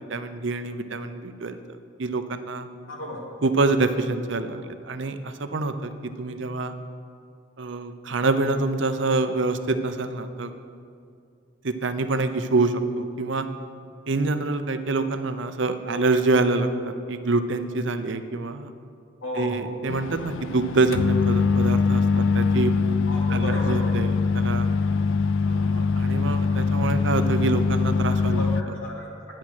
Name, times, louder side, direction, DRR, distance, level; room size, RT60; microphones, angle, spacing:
voice 1, 0.0-1.6 2.0-2.7 3.4-6.7 7.6-10.5 11.6-13.5 14.1-18.7 19.4-22.7 23.3-24.7 25.5-28.5, right 3 dB, 65° right, 9 dB, 0.7 m, -26 dB
voice 2, 2.9-3.2 19.2-19.6 23.1-24.0 28.4-29.4, left 1 dB, 90° left, -3 dB, 2.8 m, -34 dB
sound 1, 19.9-28.6, left 4 dB, 75° left, 0.4 m, -23 dB
10.5 x 8.7 x 6.2 m, 2.4 s
head